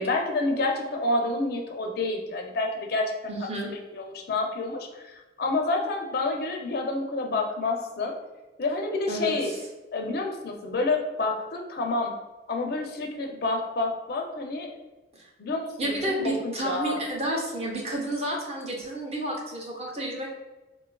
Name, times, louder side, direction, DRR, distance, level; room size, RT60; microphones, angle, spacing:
voice 1, 0.0-3.3 3.6-8.1 8.6-9.5 9.9-12.1 12.5-14.8 15.4-15.9 16.2-17.0, left 2 dB, 55° left, 2 dB, 0.4 m, -28 dB
voice 2, 3.3-3.7 9.1-9.6 15.1-15.3 15.8-20.3, right 1 dB, 35° right, -1 dB, 0.6 m, -31 dB
4.0 x 2.3 x 2.2 m, 1.1 s
head